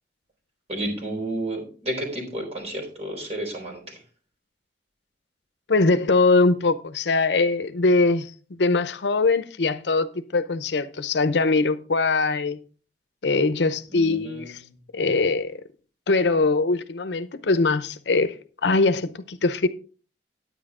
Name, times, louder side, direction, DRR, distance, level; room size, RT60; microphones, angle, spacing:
voice 1, 0.7-4.0 13.9-14.5, right 1 dB, 35° right, 4.2 m, -31 dB
voice 2, 5.7-8.3 8.6-12.6 13.2-14.6 14.9-15.5 16.1-18.3 18.6-19.7, left 3 dB, 75° left, 0.7 m, -22 dB
10.0 x 9.2 x 3.7 m
head